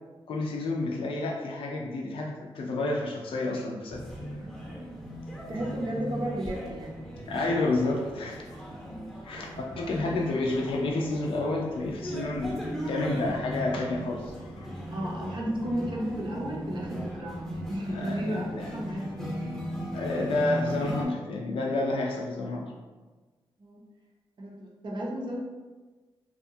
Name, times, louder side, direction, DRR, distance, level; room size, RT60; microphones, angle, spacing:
voice 1, 0.3-4.0 7.3-8.4 9.2-14.7 17.9-18.7 19.9-22.7, left 2 dB, 65° left, -1 dB, 0.4 m, -30 dB
sound 1, 3.9-21.0, equal, 5° left, 0.7 m, -37 dB
voice 2, 5.5-7.0 8.9-9.1 9.9-10.3 14.9-19.7 23.6-23.8 24.4-25.4, equal, 55° right, -3 dB, 0.6 m, -34 dB
2.7 x 2.2 x 2.6 m, 1.3 s
cardioid pair, 80°, 10 cm